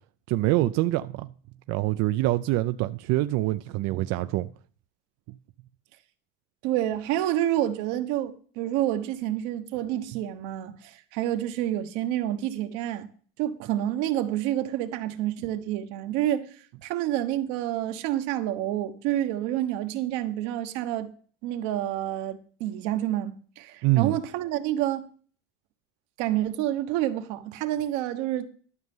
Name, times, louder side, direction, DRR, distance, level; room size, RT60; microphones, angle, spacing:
voice 1, 0.3-1.3 1.7-4.5 23.8-24.2, right 17 dB, 60° right, 0.5 m, -25 dB
voice 2, 6.6-13.1 13.4-16.5 16.8-21.1 21.4-25.1 26.2-28.5, right 12 dB, 80° right, 1.3 m, -28 dB
12.5 x 6.6 x 5.4 m
cardioid pair, 150°, 29 cm